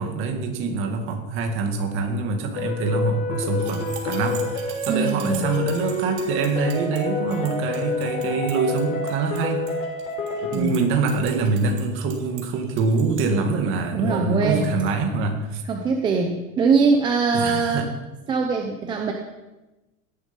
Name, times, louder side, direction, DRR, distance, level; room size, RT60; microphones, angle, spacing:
voice 1, 0.0-9.6 10.5-15.6 17.3-17.9, right 4 dB, 30° right, 4 dB, 2.1 m, -25 dB
sound 1, 2.6-10.6, left 3 dB, 85° left, 4.4 m, -28 dB
sound 2, 3.5-13.3, right 9 dB, 55° right, 3.3 m, -42 dB
voice 2, 4.9-5.5 10.5-10.8 13.9-14.7 15.7-17.8 18.3-19.1, right 4 dB, 10° right, 3 dB, 0.6 m, -22 dB
17.0 x 11.5 x 5.3 m, 1.1 s
supercardioid pair, 175°, 41 cm